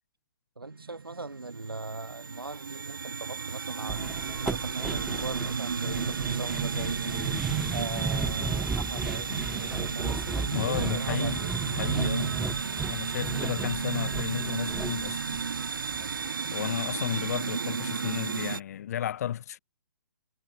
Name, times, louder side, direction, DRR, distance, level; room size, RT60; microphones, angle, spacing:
sound 1, 0.6-18.6, right 5 dB, 65° right, 1.8 m, -32 dB
voice 1, 0.6-11.6 13.1-13.2 15.9-16.2, right 3 dB, 80° right, 2.8 m, -40 dB
sound 2, 3.9-16.2 16.4-16.5 16.9-17.0, right 3 dB, 5° right, 0.3 m, -35 dB
voice 2, 10.5-11.4 11.8-12.3 12.7-15.2 16.5-19.6, left 10 dB, 45° left, 2.0 m, -33 dB
sound 3, 11.3-16.3, left 16 dB, 20° left, 3.9 m, -55 dB
figure-of-eight pair, 130°, 12 cm